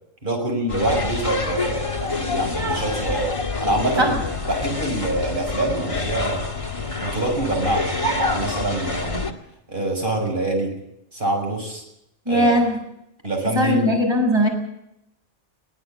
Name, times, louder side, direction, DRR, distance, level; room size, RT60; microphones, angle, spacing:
voice 1, 0.2-3.3 3.6-4.2 4.5-6.5 7.0-9.2 9.7-10.7 11.1-11.8 12.3-12.5 13.2-13.9, right 2 dB, 40° right, 3 dB, 6.8 m, -25 dB
sound 1, 0.7-9.3, left 3 dB, 25° left, 2.1 m, -27 dB
voice 2, 12.3-12.8 13.5-14.5, equal, 20° right, 2 dB, 7.4 m, -19 dB
22.5 x 17.5 x 8.0 m, 0.81 s
omnidirectional pair, 1.4 m